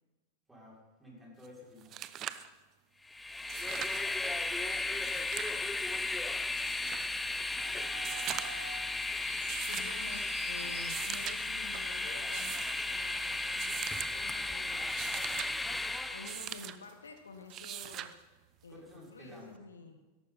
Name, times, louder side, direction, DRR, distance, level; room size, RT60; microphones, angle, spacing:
voice 1, 0.5-2.0 18.7-19.6, left 1 dB, 10° right, -3 dB, 6.1 m, -53 dB
sound 1, 1.4-1.5 1.8-2.5 3.4-4.1 4.9-5.6 6.6-7.1 8.0-8.7 9.5-10.0 10.8-11.4 12.2-12.8 13.6-14.1 14.7-15.5 16.2-16.8 17.5-18.1 19.5-19.6, right 11 dB, 35° right, 0.8 m, -41 dB
Train, 3.1-16.5, left 2 dB, 10° left, 0.8 m, -35 dB
sound 2, 7.6-12.9 13.2-13.3 14.0-14.2 14.7-14.8 15.4-16.0 16.3-18.8, right 7 dB, 55° right, 1.7 m, -50 dB
voice 2, 9.7-18.1 18.6-20.0, left 4 dB, 80° left, 7 dB, 1.4 m, -50 dB
17.0 x 13.5 x 4.2 m, 1.2 s
figure-of-eight pair, 90°, 0 cm